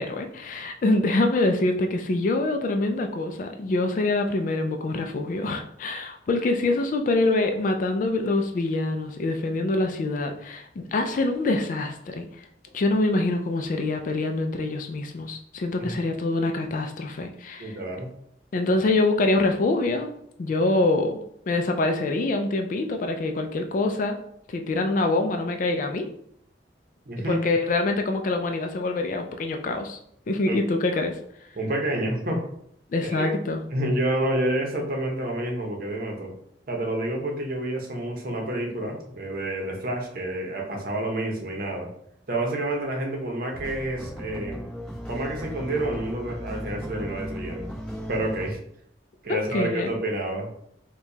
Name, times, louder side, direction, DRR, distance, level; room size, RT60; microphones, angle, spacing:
voice 1, 0.0-12.5 12.7-17.8 18.5-20.1 20.4-21.2 21.5-24.2 24.5-26.0 27.3-30.0 30.3-31.1 32.9-33.6 49.5-49.9, left 2 dB, 45° left, 5 dB, 0.3 m, -25 dB
voice 2, 17.6-18.1 27.1-27.4 30.5-30.6 31.5-32.4 33.0-33.3 33.7-36.3 36.7-41.9 42.3-44.6 45.1-47.7 48.1-48.6 49.2-50.5, right 1 dB, 55° right, 1 dB, 0.8 m, -29 dB
sound 1, 43.5-48.5, equal, 5° left, 1.1 m, -36 dB
4.5 x 2.3 x 2.7 m, 0.71 s
head